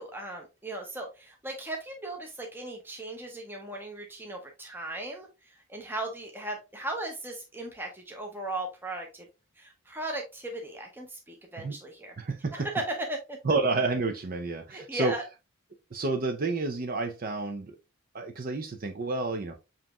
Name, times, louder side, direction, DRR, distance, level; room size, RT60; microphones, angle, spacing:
voice 1, 0.0-5.3 5.7-9.3 9.6-12.1 12.5-13.4 14.7-15.2, right 2 dB, 10° right, 0.7 m, -37 dB
voice 2, 12.2-12.5 13.4-15.1 15.9-17.8 18.1-19.5, right 3 dB, 45° right, 0.5 m, -30 dB
7.4 x 2.9 x 2.4 m
head